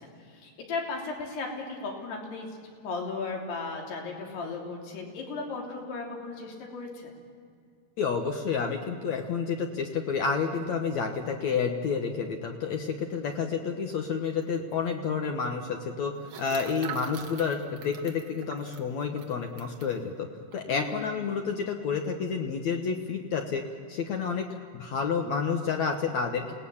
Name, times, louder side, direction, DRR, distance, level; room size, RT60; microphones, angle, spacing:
voice 1, 0.0-2.6 2.8-7.1 20.7-21.1, left 3 dB, 85° left, 0 dB, 5.5 m, -36 dB
voice 2, 8.0-20.3 20.5-23.6 23.9-26.5, left 5 dB, 65° left, 3 dB, 2.0 m, -30 dB
sound 1, 14.4-14.5 14.7-14.8 16.2-19.9 20.5-20.6 20.9-21.2, right 8 dB, 60° right, 1.7 m, -44 dB
28.0 x 19.0 x 7.2 m, 2.2 s
omnidirectional pair, 4.6 m